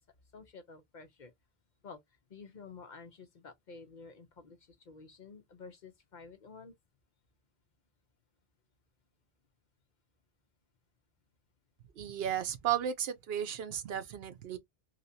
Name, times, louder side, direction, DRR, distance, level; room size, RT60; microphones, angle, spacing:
voice 1, 0.3-1.3 1.8-2.0 2.3-6.7, left 4 dB, 55° left, 0.7 m, -51 dB
voice 2, 12.0-14.6, right 10 dB, 75° right, 0.9 m, -34 dB
3.3 x 2.8 x 2.6 m
omnidirectional pair, 1.0 m